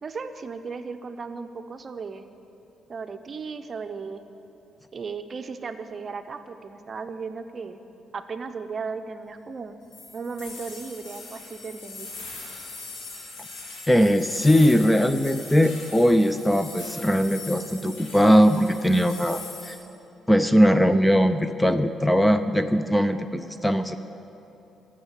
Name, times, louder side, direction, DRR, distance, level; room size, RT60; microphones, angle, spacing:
voice 1, 0.0-2.3 2.9-4.2 4.9-7.8 8.1-9.7 10.1-12.1, right 5 dB, 40° right, 9 dB, 0.7 m, -35 dB
sound 1, 9.9-19.7, left 3 dB, 85° left, 3.3 m, -40 dB
voice 2, 13.9-19.8 20.3-24.0, equal, 5° left, 10 dB, 0.5 m, -20 dB
13.5 x 7.4 x 9.9 m, 2.9 s
cardioid pair, 90°, 0 cm